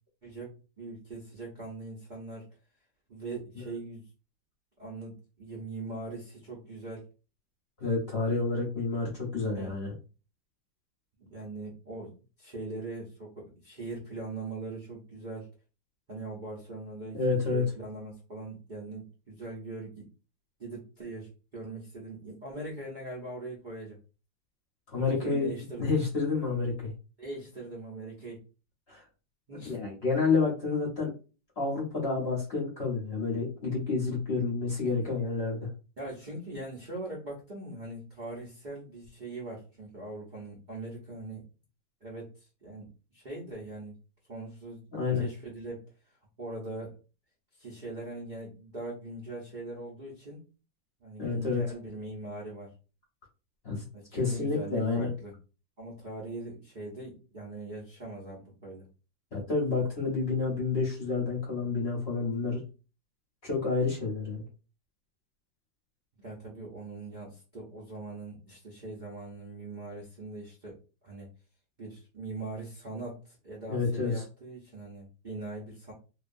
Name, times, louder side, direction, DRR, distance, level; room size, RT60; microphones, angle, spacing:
voice 1, 0.2-2.5 3.1-4.0 4.8-7.0 9.5-9.8 11.2-15.5 16.1-20.1 20.6-24.0 25.2-25.9 27.2-28.4 29.5-29.8 34.8-34.9 36.0-41.4 42.0-44.0 44.3-44.8 45.1-45.9 46.4-47.0 47.5-50.4 51.0-52.7 53.9-55.3 55.8-58.9 66.2-70.8 71.0-71.3 71.8-75.9, right 2 dB, 65° right, -4 dB, 0.4 m, -41 dB
voice 2, 7.8-9.9 17.1-17.6 24.9-26.9 28.9-29.0 29.6-31.1 31.6-35.7 44.9-45.3 51.2-51.6 53.6-53.8 54.1-55.1 59.3-62.6 63.4-64.4 73.7-74.2, left 4 dB, 45° left, -4 dB, 0.8 m, -29 dB
2.8 x 2.3 x 2.5 m, 0.33 s
omnidirectional pair, 2.0 m